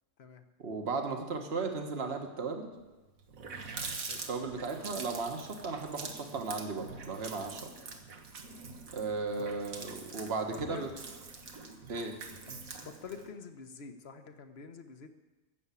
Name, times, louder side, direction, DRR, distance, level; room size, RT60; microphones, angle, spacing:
voice 1, 0.6-2.7 4.3-7.7 8.9-10.9 11.9-12.1, right 4 dB, 50° right, 4 dB, 1.5 m, -36 dB
Water tap faucet, 2.8-2.9 3.2-13.3, right 4 dB, 85° right, 1.7 m, -44 dB
voice 2, 10.5-10.8 12.8-15.1, left 5 dB, 50° left, 8 dB, 1.2 m, -46 dB
14.5 x 7.1 x 8.3 m, 1.2 s
omnidirectional pair, 1.4 m